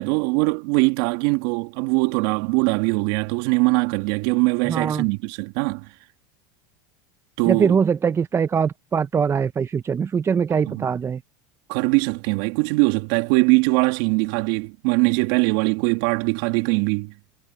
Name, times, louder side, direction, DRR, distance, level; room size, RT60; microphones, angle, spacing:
voice 1, 0.0-5.9 7.4-7.8 10.7-10.9 11.7-17.1, right 28 dB, 65° right, 2.7 m, -21 dB
voice 2, 4.7-5.1 7.4-11.2, right 6 dB, 25° right, 0.8 m, -22 dB
hypercardioid pair, 100°, 11 cm